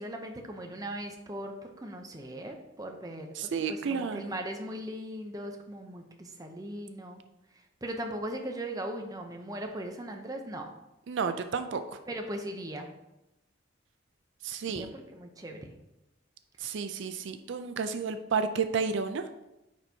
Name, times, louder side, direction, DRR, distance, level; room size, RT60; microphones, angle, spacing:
voice 1, 0.0-7.2 7.8-10.7 12.1-12.9 14.7-15.6, right 1 dB, 20° right, 3 dB, 0.6 m, -39 dB
voice 2, 3.4-4.4 11.1-11.8 14.4-14.9 16.6-19.2, right 5 dB, 65° right, 9 dB, 0.4 m, -31 dB
9.3 x 4.4 x 2.7 m, 0.93 s
head